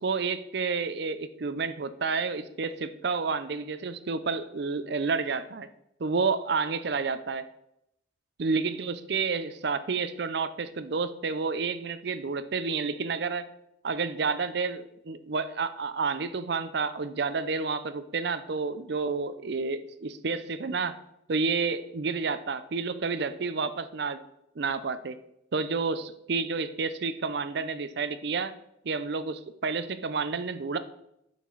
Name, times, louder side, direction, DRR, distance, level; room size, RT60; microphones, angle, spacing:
voice 1, 0.0-5.7 6.0-7.4 8.4-13.4 13.8-21.0 21.3-24.2 24.6-25.2 25.5-28.5 28.8-30.8, right 4 dB, 55° right, 12 dB, 0.5 m, -30 dB
8.3 x 5.9 x 4.6 m, 0.81 s
head